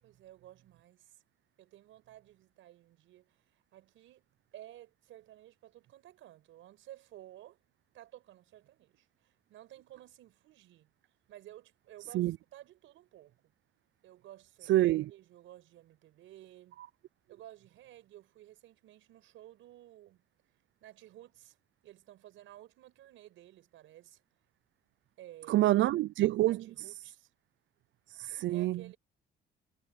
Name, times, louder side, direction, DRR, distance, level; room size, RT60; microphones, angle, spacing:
voice 1, 0.0-1.2 1.6-3.4 3.7-4.2 4.5-7.6 7.9-10.9 11.3-13.5 14.0-16.8 17.3-20.2 20.8-21.6 21.8-24.2 25.2-25.7 26.5-27.3 28.5-29.0, right 13 dB, 85° right, 5.4 m, -54 dB
voice 2, 14.7-15.1 25.5-26.6 28.1-28.8, right 15 dB, 70° right, 0.4 m, -27 dB
cardioid pair, 90°, 20 cm